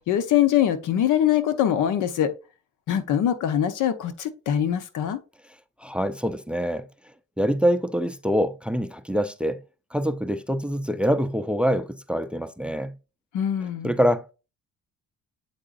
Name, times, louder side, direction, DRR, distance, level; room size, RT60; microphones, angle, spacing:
voice 1, 0.1-2.3 2.9-5.2 13.3-13.9, left 10 dB, 85° left, 0.9 m, -23 dB
voice 2, 5.8-6.8 7.4-9.6 9.9-13.0 13.8-14.3, equal, 5° right, 0.5 m, -25 dB
7.7 x 4.8 x 2.5 m
cardioid pair, 90°, 30 cm